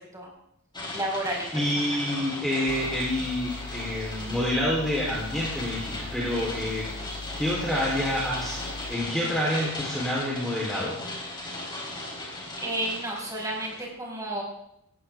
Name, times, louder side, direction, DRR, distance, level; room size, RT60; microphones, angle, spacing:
sound 1, 0.7-13.9, left 2 dB, 20° left, 4.1 m, -37 dB
voice 1, 0.9-1.4 1.7-1.8 12.6-14.4, right 1 dB, 15° right, -3 dB, 5.7 m, -31 dB
voice 2, 1.5-6.9 7.3-8.6 8.9-11.0, left 1 dB, ahead, -6 dB, 3.6 m, -28 dB
sound 2, 2.7-9.0, left 4 dB, 85° left, 2.1 m, -40 dB
18.5 x 16.5 x 3.6 m, 0.80 s
head